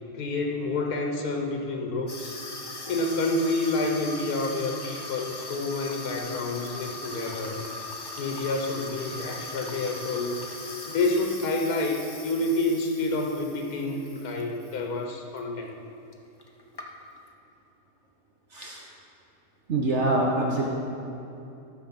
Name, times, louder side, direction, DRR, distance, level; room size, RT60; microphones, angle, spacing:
voice 1, 0.1-2.4 2.9-7.6 8.2-10.4 10.9-15.8, left 2 dB, 85° left, 3 dB, 1.5 m, -28 dB
Water tap faucet / Sink (filling or washing), 2.1-14.8 15.1-15.4 16.1-16.2 16.4-17.3, left 2 dB, 25° left, 0.6 m, -40 dB
voice 2, 19.7-20.7, right 2 dB, 55° right, -1 dB, 1.2 m, -25 dB
13.0 x 6.7 x 5.8 m, 2.8 s
omnidirectional pair, 1.6 m